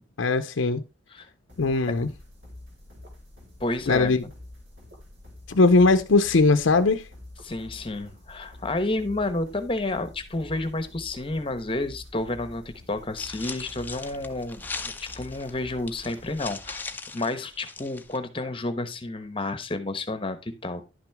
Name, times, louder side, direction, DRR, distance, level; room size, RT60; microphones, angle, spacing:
voice 1, 0.2-0.8 1.6-2.1 3.9-4.2 5.5-7.0, left 3 dB, 75° left, 0.6 m, -20 dB
sound 1, 1.5-17.0, left 1 dB, 70° right, 3.5 m, -47 dB
voice 2, 3.6-4.3 7.4-14.6 15.0-16.9 17.1-20.8, left 2 dB, 25° left, 1.0 m, -30 dB
Footsteps on Leaves, 13.2-18.2, left 4 dB, 10° left, 0.6 m, -39 dB
11.0 x 6.0 x 3.5 m
head